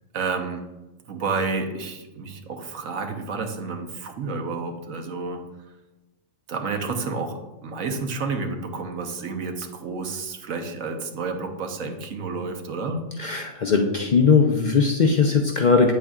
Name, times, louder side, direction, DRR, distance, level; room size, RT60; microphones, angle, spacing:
voice 1, 0.1-0.7 1.1-5.4 6.5-13.1, right 4 dB, 75° right, 5 dB, 1.3 m, -30 dB
voice 2, 13.2-15.9, left 5 dB, 55° left, 3 dB, 0.5 m, -19 dB
8.6 x 8.0 x 2.4 m, 1.1 s
omnidirectional pair, 1.4 m